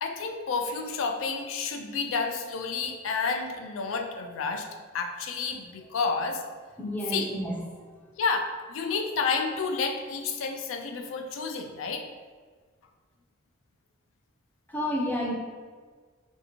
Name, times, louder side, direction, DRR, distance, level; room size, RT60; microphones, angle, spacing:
voice 1, 0.0-4.7 4.9-6.4 7.1-7.3 8.2-12.1, left 4 dB, 80° left, 5 dB, 0.4 m, -30 dB
voice 2, 6.8-7.9 14.7-15.3, equal, 10° left, -1 dB, 0.4 m, -31 dB
3.3 x 2.6 x 2.8 m, 1.5 s
head